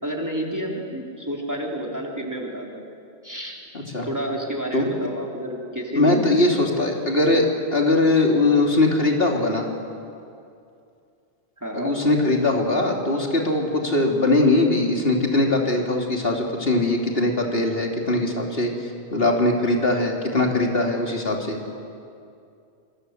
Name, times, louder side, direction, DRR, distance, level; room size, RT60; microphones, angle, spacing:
voice 1, 0.0-2.8 3.2-3.6 4.0-6.4 11.6-11.9, right 1 dB, 15° right, -1 dB, 3.4 m, -29 dB
voice 2, 3.7-4.1 4.7-4.9 5.9-9.7 11.7-21.6, left 2 dB, 60° left, 1 dB, 3.5 m, -21 dB
27.5 x 26.0 x 8.0 m, 2.5 s
omnidirectional pair, 1.1 m